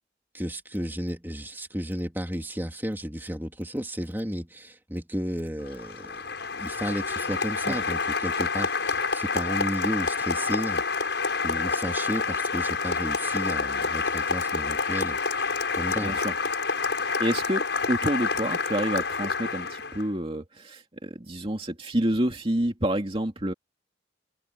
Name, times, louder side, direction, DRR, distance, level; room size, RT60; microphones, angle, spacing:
voice 1, 0.3-11.2 11.4-16.2, equal, 10° right, 3.2 m, -33 dB
Applause, 5.6-20.1, left 4 dB, 65° left, 6.9 m, -28 dB
voice 2, 16.0-16.3 17.2-17.6 17.9-23.5, right 1 dB, 30° right, 2.5 m, -28 dB
head